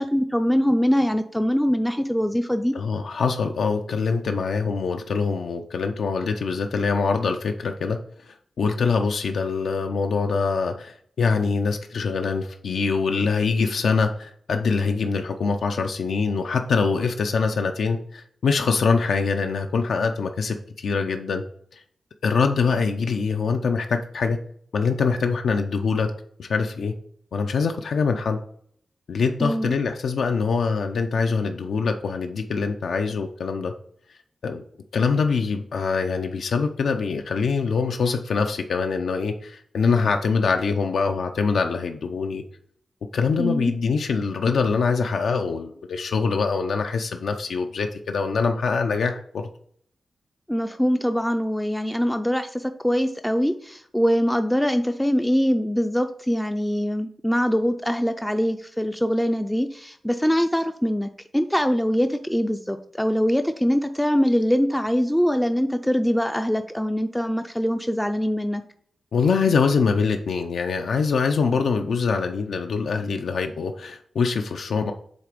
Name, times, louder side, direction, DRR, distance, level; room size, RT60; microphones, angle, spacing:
voice 1, 0.0-2.7 29.4-29.8 43.4-43.7 50.5-68.6, equal, 5° left, 7 dB, 0.3 m, -23 dB
voice 2, 2.7-8.0 8.2-21.4 21.7-21.8 22.2-24.4 24.7-26.1 26.4-26.9 27.3-28.4 29.1-33.7 34.4-34.6 34.9-42.4 43.1-49.4 69.1-74.9, left 5 dB, 80° left, 5 dB, 0.5 m, -24 dB
8.0 x 3.3 x 5.1 m, 0.63 s
wide cardioid pair, 155°, 0 cm